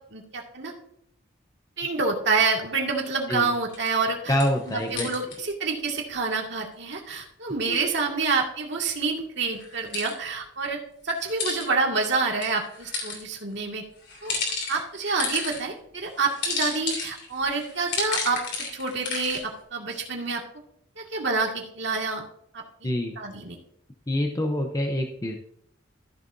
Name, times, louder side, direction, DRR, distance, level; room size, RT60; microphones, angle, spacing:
voice 1, 0.1-0.7 1.8-4.4 4.7-13.8 14.2-14.3 14.7-20.4 21.0-22.2 22.5-22.9 23.2-23.6, right 4 dB, 60° right, 1 dB, 2.1 m, -28 dB
sound 1, 3.7-3.9 4.4-5.4 9.6-10.1 11.2-11.7 12.4-13.2 14.0-15.6 16.2-19.4, left 4 dB, 55° left, 3.1 m, -32 dB
voice 2, 4.3-5.1 7.6-7.8 22.8-23.2 24.1-25.4, left 1 dB, 15° left, 3 dB, 0.8 m, -26 dB
14.5 x 6.8 x 2.7 m, 0.69 s
head